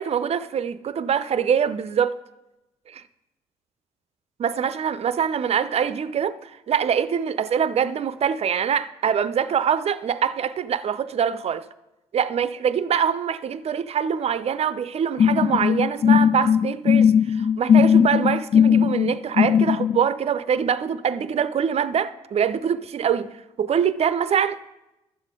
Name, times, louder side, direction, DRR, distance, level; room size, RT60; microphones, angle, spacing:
voice 1, 0.0-2.2 4.4-11.6 12.1-23.3 23.6-24.6, right 8 dB, 45° right, 0.5 m, -24 dB
sound 1, 15.2-20.0, left 8 dB, 45° left, 0.4 m, -18 dB
12.5 x 7.4 x 3.7 m
hypercardioid pair, 55°, 15 cm